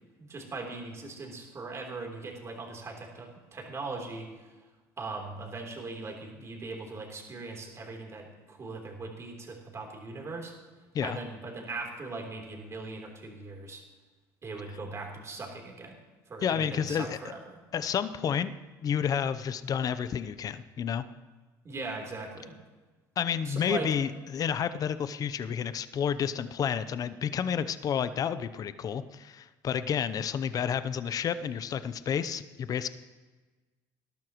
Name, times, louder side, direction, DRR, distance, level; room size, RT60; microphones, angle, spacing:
voice 1, 0.2-4.3 5.0-10.5 11.0-13.8 14.4-16.0 16.3-17.6 21.6-22.6 23.5-23.9, right 3 dB, 30° right, 1 dB, 3.5 m, -39 dB
voice 2, 16.4-17.2 17.7-18.6 18.8-21.0 23.2-32.9, left 8 dB, 40° left, 13 dB, 0.7 m, -30 dB
19.5 x 12.5 x 3.1 m, 1.3 s
supercardioid pair, 95°, 9 cm